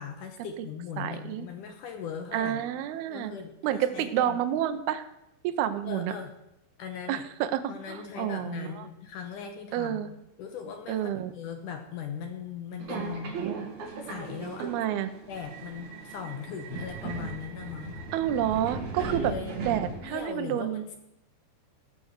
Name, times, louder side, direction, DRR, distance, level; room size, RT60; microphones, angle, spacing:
voice 1, 0.0-2.6 3.1-4.4 5.8-6.3 6.8-7.2 7.7-10.1 10.4-13.3 14.0-14.7 15.3-18.0 19.0-19.6 20.0-21.0, left 7 dB, 75° left, 5 dB, 1.9 m, -39 dB
voice 2, 1.0-1.5 2.3-3.3 3.6-5.0 5.4-6.1 7.1-7.6 7.9-8.9 9.7-10.1 10.9-11.3 12.9-13.7 14.6-15.1 18.1-19.3 19.6-20.8, right 11 dB, 75° right, 9 dB, 2.6 m, -29 dB
Subway metro underground, 12.8-20.3, right 4 dB, 50° right, 3.2 m, -38 dB
18.0 x 6.8 x 6.5 m, 0.84 s
omnidirectional pair, 5.0 m